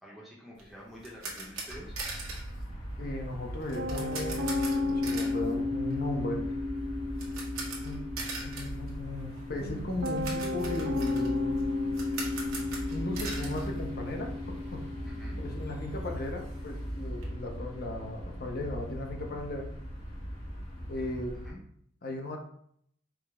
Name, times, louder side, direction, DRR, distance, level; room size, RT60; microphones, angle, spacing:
voice 1, 0.0-2.0 15.0-15.4 21.4-21.6, equal, ahead, -5 dB, 0.7 m, -48 dB
sound 1, 0.6-14.5 14.8-14.9 15.4-15.5 15.7-17.2, right 3 dB, 80° right, 1.0 m, -42 dB
sound 2, 1.7-21.5, equal, 90° left, 1.5 m, -40 dB
voice 2, 2.7-6.4 7.8-8.1 8.4-11.5 12.9-14.3 14.7-14.9 15.4-19.7 20.9-21.4 22.0-22.4, left 1 dB, 45° left, 2 dB, 0.6 m, -37 dB
Piano, 3.7-20.9, left 2 dB, 60° right, 0.5 m, -35 dB
4.8 x 2.0 x 3.5 m, 0.68 s
head